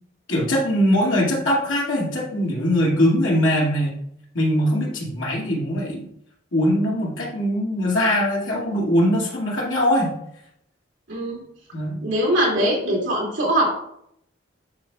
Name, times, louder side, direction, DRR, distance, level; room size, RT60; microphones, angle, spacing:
voice 1, 0.3-4.0 4.3-6.1 6.5-10.2 11.7-12.0, equal, 85° left, -4 dB, 2.3 m, -21 dB
voice 2, 11.1-11.4 12.0-13.7, right 1 dB, 80° right, -3 dB, 2.4 m, -21 dB
10.5 x 4.3 x 2.4 m, 0.73 s
head